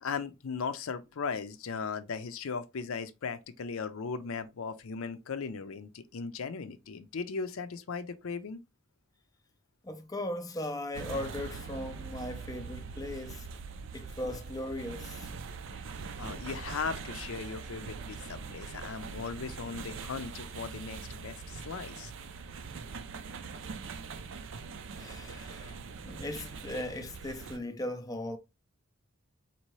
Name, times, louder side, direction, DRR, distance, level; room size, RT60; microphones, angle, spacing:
voice 1, 0.0-8.6 16.2-22.1, left 5 dB, 85° left, 0.5 m, -37 dB
voice 2, 9.8-13.4 13.9-15.3 25.0-25.8 26.0-28.4, left 1 dB, 20° left, 0.4 m, -38 dB
sound 1, 10.9-27.6, right 5 dB, 65° right, 0.4 m, -42 dB
4.3 x 2.7 x 3.0 m
head